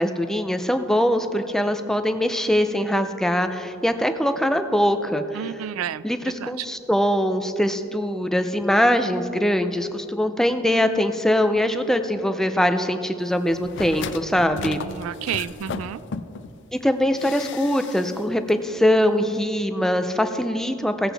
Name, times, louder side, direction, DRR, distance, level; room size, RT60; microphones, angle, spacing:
voice 1, 0.0-5.6 6.0-14.8 16.7-21.1, equal, ahead, 8 dB, 0.4 m, -22 dB
voice 2, 5.3-6.0 6.4-6.7 14.5-16.0, right 9 dB, 85° right, 18 dB, 0.3 m, -31 dB
sound 1, 13.5-16.5 17.2-18.2 18.5-18.6, left 5 dB, 60° left, 0.4 m, -35 dB
16.5 x 8.0 x 3.4 m, 2.6 s
head